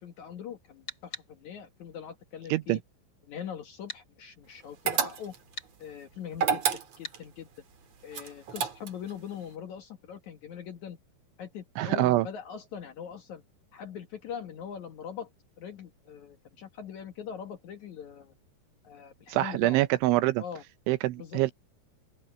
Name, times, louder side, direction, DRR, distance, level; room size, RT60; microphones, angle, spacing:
voice 1, 0.0-2.8 3.2-5.3 5.8-6.6 7.0-7.5 8.0-11.0 11.4-13.4 13.7-15.3 15.6-18.3 18.8-19.8 20.4-20.6 21.2-21.4, left 8 dB, 80° left, 1.6 m, -42 dB
sound 1, 0.9-1.3 3.9-4.1 5.6-5.7 7.0-7.2, left 2 dB, 20° left, 7.4 m, -40 dB
sound 2, 4.9-5.5 6.3-7.2 8.1-9.1, right 7 dB, 50° right, 2.2 m, -29 dB
voice 2, 11.8-12.3 19.3-20.4 20.9-21.5, right 17 dB, 80° right, 3.0 m, -25 dB
open air
omnidirectional pair, 5.9 m